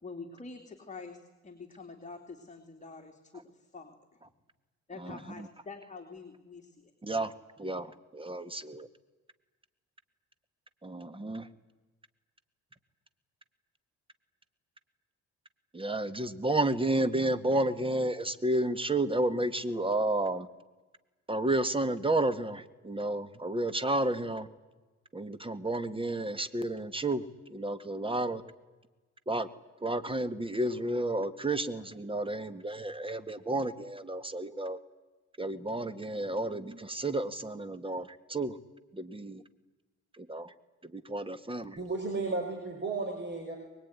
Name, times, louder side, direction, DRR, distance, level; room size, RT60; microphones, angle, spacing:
voice 1, 0.0-4.2 4.9-6.9, left 4 dB, 25° left, 3 dB, 3.1 m, -46 dB
voice 2, 7.0-7.3 7.6-7.9 8.1-8.9 10.8-11.5 15.7-20.5 21.3-24.5 25.1-27.2 27.5-28.4 29.3-29.5 29.8-34.8 35.4-38.5 38.9-39.4 40.2-40.5 40.9-41.8, right 1 dB, 15° right, 12 dB, 1.9 m, -31 dB
voice 3, 41.8-43.6, right 3 dB, 35° right, 2 dB, 5.7 m, -33 dB
23.5 x 20.5 x 9.8 m, 1.2 s
cardioid pair, 90°, 30 cm